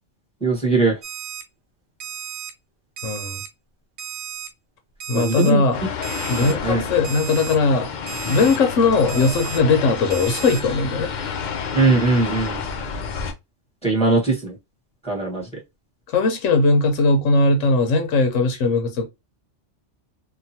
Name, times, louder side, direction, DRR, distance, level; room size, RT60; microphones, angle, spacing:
voice 1, 0.4-1.0 5.1-5.6 6.3-6.8 11.7-12.6 13.8-14.5 15.0-15.5, right 3 dB, 5° left, 1.2 m, -20 dB
Alarm, 1.0-1.4 2.0-2.5 3.0-3.5 4.0-4.5 5.0-5.5 6.0-6.5 7.0-7.6 8.1-8.6 9.1-9.6 10.1-10.6, right 9 dB, 65° right, 0.9 m, -34 dB
voice 2, 3.0-3.4 5.1-5.8 6.3-7.9 8.3-11.1 16.1-19.1, left 3 dB, 85° left, 1.1 m, -19 dB
sound 1, 5.7-13.3, left 6 dB, 55° left, 0.5 m, -30 dB
2.9 x 2.3 x 2.7 m
omnidirectional pair, 1.3 m